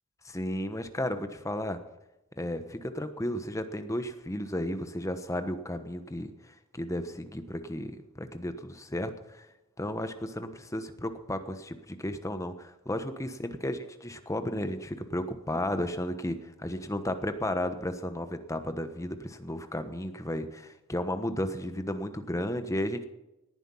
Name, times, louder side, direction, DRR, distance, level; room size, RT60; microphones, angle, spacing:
voice 1, 0.2-1.8 2.4-9.5 9.8-23.0, left 1 dB, 15° left, 9 dB, 1.2 m, -34 dB
18.5 x 10.5 x 5.6 m, 0.98 s
head